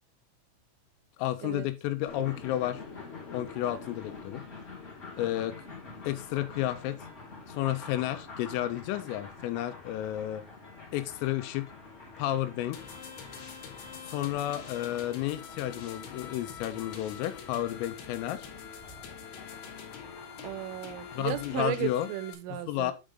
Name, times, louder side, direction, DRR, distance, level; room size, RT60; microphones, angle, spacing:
voice 1, 1.2-2.8 3.3-4.4 5.2-5.6 6.0-7.0 7.5-10.4 10.9-11.7 12.2-12.8 14.0-18.5 21.1-22.1 22.7-22.9, left 13 dB, 80° left, 3.2 m, -31 dB
sound 1, 2.0-21.6, left 3 dB, 20° left, 1.8 m, -47 dB
sound 2, 12.7-22.3, left 7 dB, 65° left, 3.0 m, -45 dB
voice 2, 20.4-22.9, right 14 dB, 85° right, 3.2 m, -35 dB
9.2 x 5.1 x 3.6 m
omnidirectional pair, 6.0 m